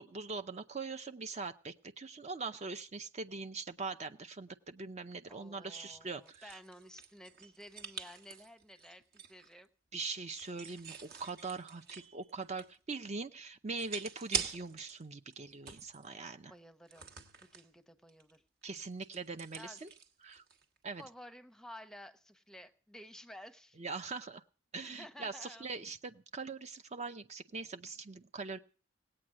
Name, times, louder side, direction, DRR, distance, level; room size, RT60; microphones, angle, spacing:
voice 1, 0.0-6.6 9.9-16.5 18.6-19.9 20.2-20.4 20.8-21.0 23.8-24.4 24.7-28.6, right 4 dB, 35° right, 9 dB, 0.6 m, -42 dB
voice 2, 5.3-9.7 16.0-17.1 17.4-18.8 19.5-19.8 21.0-23.8 24.8-25.7, left 1 dB, 5° left, 11 dB, 0.9 m, -53 dB
sound 1, 5.9-9.5 10.3-12.9 13.2-13.3 13.8-15.0 15.3-16.1 16.9-17.7 18.1-18.4 18.6-20.8, right 7 dB, 55° right, 1.5 m, -44 dB
18.5 x 8.8 x 7.4 m, 0.39 s
head